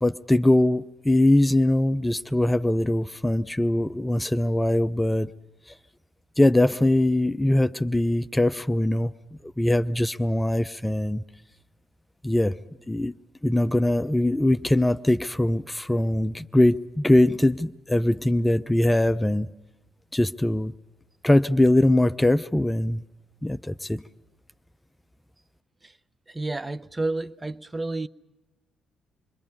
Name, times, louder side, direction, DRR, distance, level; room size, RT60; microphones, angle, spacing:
voice 1, 0.0-5.3 6.4-9.1 9.6-11.2 12.2-12.5 12.9-13.1 13.4-19.5 20.1-20.7 21.2-23.0 23.4-24.0, left 1 dB, 10° left, 0.7 m, -22 dB
voice 2, 26.3-28.1, right 2 dB, 20° right, 0.9 m, -30 dB
27.0 x 23.0 x 5.5 m
figure-of-eight pair, 40°, 0 cm